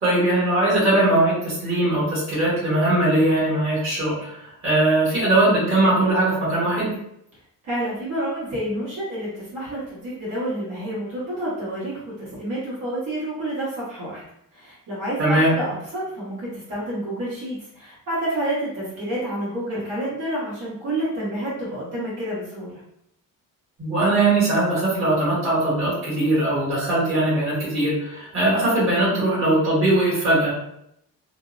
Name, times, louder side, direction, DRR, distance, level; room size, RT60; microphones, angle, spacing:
voice 1, 0.0-6.9 15.2-15.5 23.8-30.5, right 2 dB, 35° right, -9 dB, 1.3 m, -20 dB
voice 2, 7.6-14.2 14.5-22.8, right 1 dB, 60° right, -10 dB, 1.2 m, -29 dB
2.6 x 2.0 x 2.4 m, 0.76 s
cardioid pair, 170°, 37 cm